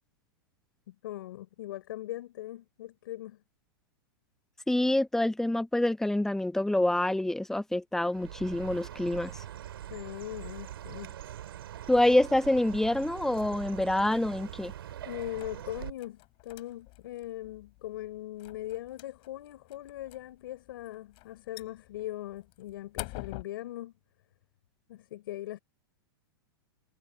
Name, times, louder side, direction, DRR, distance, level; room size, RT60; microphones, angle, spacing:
voice 1, 0.9-3.4 9.9-11.1 15.0-23.9 24.9-25.6, left 14 dB, 70° left, 5.3 m, -40 dB
voice 2, 4.7-9.4 11.9-14.7, left 1 dB, 5° left, 0.9 m, -26 dB
Chirp tweet, 8.1-15.9, right 11 dB, 75° right, 7.0 m, -43 dB
sound 1, 11.8-23.4, left 25 dB, 45° left, 7.3 m, -50 dB
hypercardioid pair, 120°, 12 cm